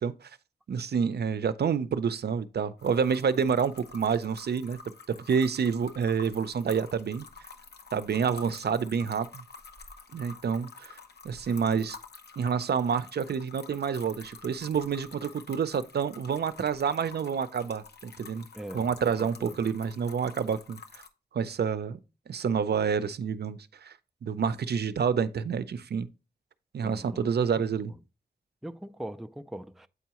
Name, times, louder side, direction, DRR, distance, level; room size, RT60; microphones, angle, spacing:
voice 1, 0.7-4.8 5.3-7.2 7.9-9.4 10.1-11.0 11.2-12.0 12.4-18.5 18.7-20.8 21.3-22.0 22.3-23.9 24.2-26.1 26.7-27.9, right 6 dB, 75° right, 0.5 m, -28 dB
sound 1, 2.8-21.1, left 4 dB, 75° left, 0.8 m, -49 dB
voice 2, 18.5-18.9 19.2-19.6 26.8-27.3 27.9-28.0 28.6-29.9, right 1 dB, ahead, 0.3 m, -41 dB
8.1 x 4.6 x 2.9 m
wide cardioid pair, 95°, 17 cm